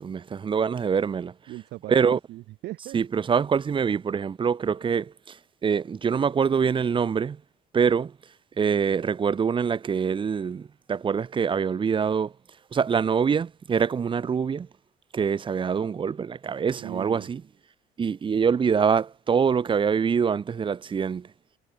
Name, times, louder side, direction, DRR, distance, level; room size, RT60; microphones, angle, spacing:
voice 1, 0.0-1.3 1.9-2.2 2.9-5.4 5.6-7.4 7.7-8.1 8.6-12.3 12.7-14.7 15.1-17.4 18.0-21.3, right 6 dB, 30° right, 0.8 m, -24 dB
voice 2, 1.5-3.0 16.8-17.3, right 17 dB, 80° right, 2.3 m, -38 dB
cardioid pair, 110°, 17 cm